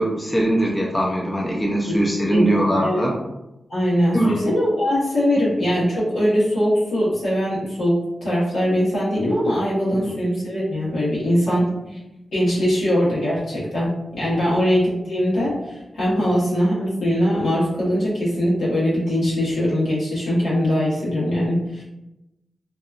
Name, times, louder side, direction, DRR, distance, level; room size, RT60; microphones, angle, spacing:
voice 1, 0.0-3.1 4.1-4.4, right 1 dB, 20° left, -2 dB, 0.6 m, -21 dB
voice 2, 2.3-3.1 3.7-12.0 12.3-21.8, equal, 85° left, -8 dB, 1.2 m, -21 dB
2.7 x 2.2 x 2.4 m, 0.93 s
cardioid pair, 55°, 0 cm